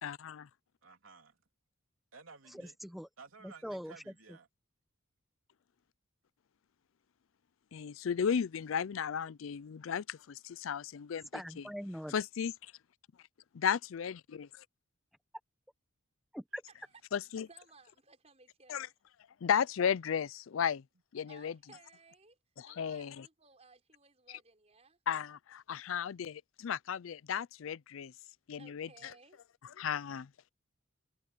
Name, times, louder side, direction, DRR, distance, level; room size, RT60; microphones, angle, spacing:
voice 1, 0.0-0.5 7.7-11.3 12.1-12.7 13.5-14.6 17.1-17.5 18.7-18.9 19.4-20.8 21.1-21.6 22.6-23.3 24.3-24.4 25.1-28.1 28.5-29.1 29.8-30.3, left 7 dB, 75° left, 0.4 m, -34 dB
voice 2, 0.8-1.4 2.1-2.7 3.2-4.5 21.2-21.3, right 4 dB, 80° right, 3.3 m, -55 dB
voice 3, 2.5-3.1 3.4-4.1 11.3-12.1 16.3-16.6, equal, ahead, 1.2 m, -42 dB
voice 4, 17.5-18.9 21.3-22.4 22.6-25.0 28.6-29.4, right 4 dB, 30° right, 4.9 m, -60 dB
head